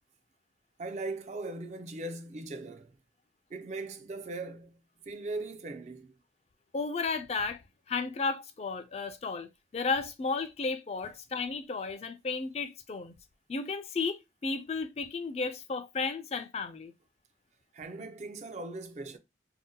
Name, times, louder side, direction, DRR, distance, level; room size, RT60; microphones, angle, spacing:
voice 1, 0.8-2.9 3.5-6.1 17.7-19.2, right 2 dB, 40° right, 0.4 m, -39 dB
voice 2, 6.7-7.6 7.9-9.5 9.7-13.1 13.5-16.9, left 4 dB, 35° left, 0.3 m, -33 dB
2.7 x 2.1 x 3.7 m
head